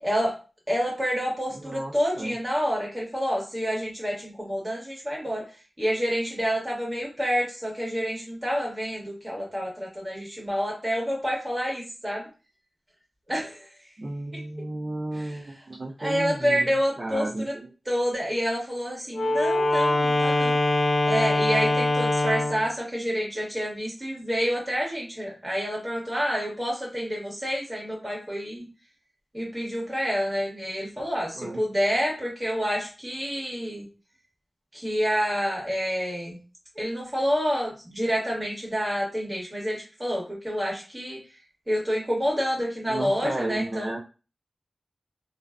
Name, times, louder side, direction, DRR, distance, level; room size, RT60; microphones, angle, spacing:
voice 1, 0.0-0.4 0.7-5.5 5.8-12.3 13.3-13.7 15.1-15.4 16.0-17.5 17.8-20.6 21.1-28.7 29.3-33.8 34.7-36.4 36.7-41.2 41.7-44.0, equal, 20° right, -3 dB, 1.3 m, -28 dB
voice 2, 1.5-2.3 14.0-17.7 31.3-31.6 42.9-44.0, right 2 dB, 50° right, -3 dB, 0.5 m, -33 dB
Wind instrument woodwind instrument, 19.1-22.7, left 2 dB, 55° left, 0.6 m, -23 dB
2.4 x 2.4 x 2.2 m, 0.33 s
wide cardioid pair, 75°, 0 cm